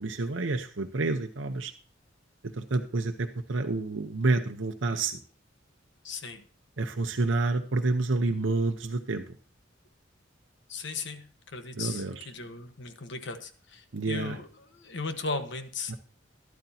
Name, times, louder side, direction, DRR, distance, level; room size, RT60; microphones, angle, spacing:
voice 1, 0.0-1.7 2.6-5.2 6.8-9.2 11.8-12.2 13.9-14.4 15.9-16.0, right 3 dB, 70° right, 5 dB, 0.8 m, -28 dB
voice 2, 6.0-6.4 10.7-16.0, left 4 dB, 65° left, 8 dB, 1.3 m, -37 dB
13.0 x 12.0 x 2.8 m, 0.41 s
head